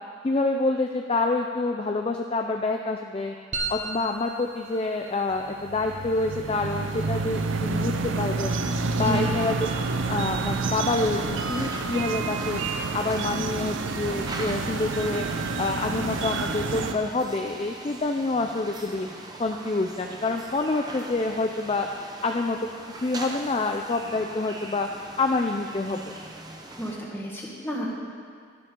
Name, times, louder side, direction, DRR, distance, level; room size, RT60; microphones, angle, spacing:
voice 1, 0.2-3.3 3.7-8.6 9.0-9.6 10.1-12.6 12.9-15.3 15.6-19.1 19.4-21.9 22.2-22.6 23.0-24.9 25.2-26.2, left 3 dB, 30° left, 3 dB, 0.4 m, -27 dB
sound 1, 3.5-18.2, right 2 dB, 35° right, 1.2 m, -43 dB
sound 2, 5.3-16.9, right 3 dB, 90° right, 0.6 m, -29 dB
voice 2, 9.0-9.4 26.8-27.9, right 1 dB, 10° left, -3 dB, 1.6 m, -31 dB
sound 3, 11.0-27.0, right 2 dB, 20° right, 0.8 m, -42 dB
12.5 x 11.0 x 3.8 m, 2.1 s
head